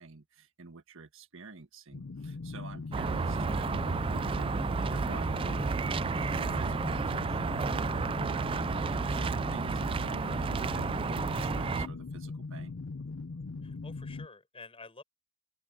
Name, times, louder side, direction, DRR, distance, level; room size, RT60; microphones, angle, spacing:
voice 1, 0.0-10.2 10.6-12.8, right 4 dB, 65° right, 1.6 m, -50 dB
sound 1, 1.9-14.3, left 3 dB, 65° left, 0.6 m, -40 dB
sound 2, 2.9-11.9, right 4 dB, 25° right, 0.3 m, -31 dB
voice 2, 13.6-15.0, left 3 dB, 25° left, 7.0 m, -50 dB
open air
head